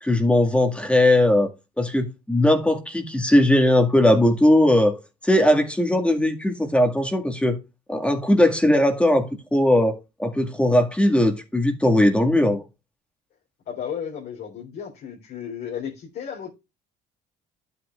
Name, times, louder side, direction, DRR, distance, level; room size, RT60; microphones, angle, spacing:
voice 1, 0.0-1.5 1.8-7.6 7.9-12.6, left 1 dB, 5° left, 1.9 m, -19 dB
voice 2, 13.7-16.5, left 8 dB, 70° left, 3.7 m, -33 dB
12.0 x 8.2 x 2.4 m
cardioid pair, 110°, 17 cm